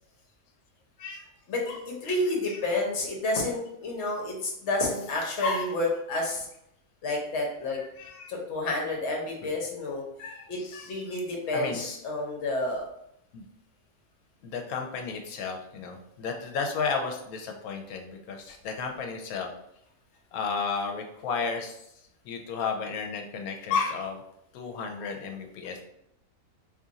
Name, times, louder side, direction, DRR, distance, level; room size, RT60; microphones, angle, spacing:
voice 1, 1.5-6.5 7.0-7.8 8.3-10.0 10.5-10.6 10.9-12.8, left 2 dB, 55° left, 0 dB, 1.1 m, -30 dB
voice 2, 5.4-5.7 8.0-8.3 9.4-9.5 10.2-10.9 11.5-11.8 13.3-13.4 14.4-19.5 20.3-21.8 22.2-24.2 24.5-25.8, left 5 dB, 80° left, 3 dB, 1.1 m, -33 dB
2.9 x 2.4 x 3.9 m, 0.78 s
omnidirectional pair, 1.5 m